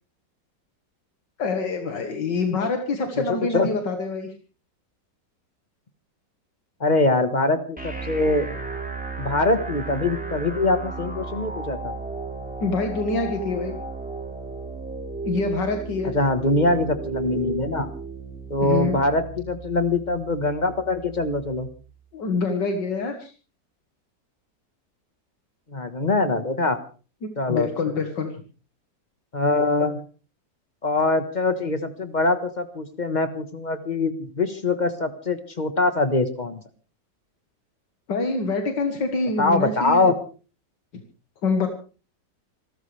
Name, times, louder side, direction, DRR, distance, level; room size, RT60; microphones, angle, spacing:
voice 1, 1.4-4.3 12.6-13.8 15.2-16.1 18.6-19.0 22.1-23.3 27.5-28.3 38.1-40.1 41.4-41.7, left 3 dB, 80° left, 5 dB, 2.3 m, -25 dB
voice 2, 3.3-3.7 6.8-8.5 9.2-11.9 16.1-17.9 18.5-21.7 25.7-26.8 27.4-27.7 29.3-29.9 30.8-36.6 39.4-40.1, left 2 dB, 25° left, 9 dB, 1.4 m, -23 dB
sound 1, 7.8-21.7, right 4 dB, 5° right, 3.5 m, -34 dB
26.5 x 13.5 x 3.4 m, 0.37 s
omnidirectional pair, 1.9 m